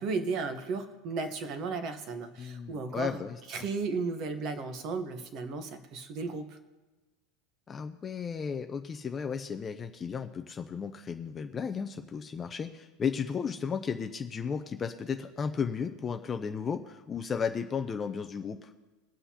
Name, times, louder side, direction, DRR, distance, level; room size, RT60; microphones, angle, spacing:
voice 1, 0.0-3.2 3.5-6.6, right 4 dB, 30° right, 8 dB, 1.0 m, -34 dB
voice 2, 2.4-3.4 7.7-18.7, left 6 dB, 15° left, 7 dB, 0.4 m, -34 dB
23.0 x 7.9 x 2.8 m, 1.2 s
supercardioid pair, 180°, 0 cm